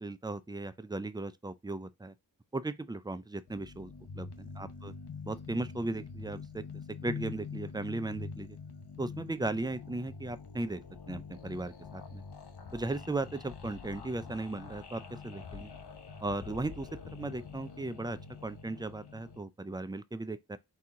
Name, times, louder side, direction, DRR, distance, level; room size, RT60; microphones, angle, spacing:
voice 1, 0.0-2.1 2.5-3.9 4.2-4.9 5.2-6.6 7.0-8.6 9.0-10.8 11.1-12.2 12.7-15.7 16.2-20.6, right 2 dB, 10° right, 0.4 m, -37 dB
sound 1, 3.5-19.4, left 5 dB, 90° left, 0.8 m, -46 dB
sound 2, 10.7-12.1 12.4-17.7 18.1-18.2, left 8 dB, 45° left, 0.5 m, -52 dB
4.2 x 2.8 x 3.6 m
wide cardioid pair, 70°, 39 cm